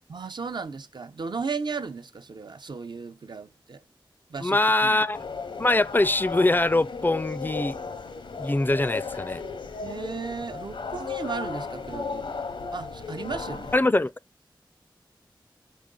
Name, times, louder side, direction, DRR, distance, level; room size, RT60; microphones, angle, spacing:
voice 1, 0.1-3.8 4.3-5.0 9.8-12.3 12.7-13.9, right 5 dB, 60° right, 0.6 m, -35 dB
voice 2, 4.4-5.2 5.6-7.8 8.4-9.4 13.7-14.1, left 2 dB, 25° left, 0.4 m, -23 dB
sound 1, 5.1-13.8, left 4 dB, 80° left, 0.8 m, -35 dB
5.4 x 5.1 x 3.7 m
cardioid pair, 40°, 9 cm